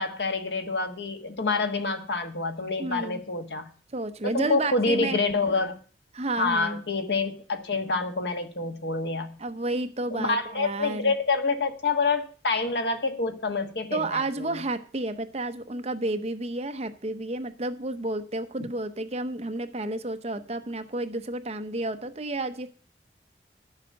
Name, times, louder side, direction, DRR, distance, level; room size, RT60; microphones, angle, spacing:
voice 1, 0.0-3.7 4.2-5.8 6.4-9.4 10.1-14.6, left 3 dB, 70° left, 6 dB, 1.4 m, -27 dB
voice 2, 2.8-3.2 3.9-5.2 6.1-6.8 9.4-11.1 13.9-22.7, right 2 dB, 35° right, 9 dB, 0.8 m, -31 dB
11.0 x 7.3 x 6.5 m, 0.41 s
head